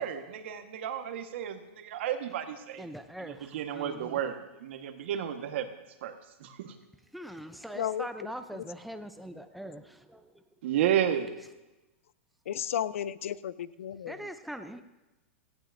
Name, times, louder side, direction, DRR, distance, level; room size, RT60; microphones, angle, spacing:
voice 1, 0.0-2.9 3.2-5.7 6.0-6.7 10.6-11.3, right 10 dB, 60° right, 7 dB, 1.4 m, -32 dB
voice 2, 2.8-4.2 7.1-10.4 14.0-14.8, right 1 dB, ahead, 7 dB, 0.5 m, -42 dB
voice 3, 7.7-8.1 8.5-8.6 12.5-14.2, left 10 dB, 80° left, 18 dB, 0.5 m, -33 dB
17.5 x 15.0 x 2.6 m, 1.0 s
supercardioid pair, 155°, 7 cm